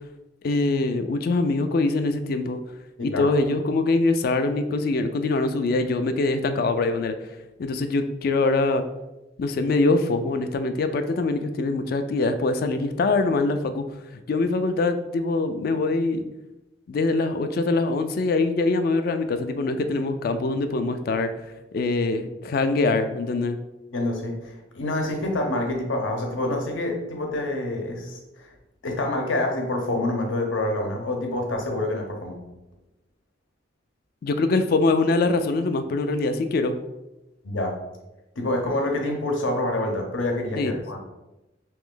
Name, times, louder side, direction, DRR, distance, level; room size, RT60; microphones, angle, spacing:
voice 1, 0.4-2.6 3.0-7.2 7.6-8.8 9.4-13.8 14.3-16.2 16.9-21.3 21.7-23.6 34.2-36.8 40.6-40.7, left 3 dB, 50° left, 9 dB, 0.3 m, -23 dB
voice 2, 3.0-3.3 23.9-28.5 28.8-32.4 37.4-37.8 38.4-41.0, left 1 dB, 85° left, 2 dB, 0.8 m, -27 dB
3.3 x 3.0 x 3.7 m, 0.99 s
head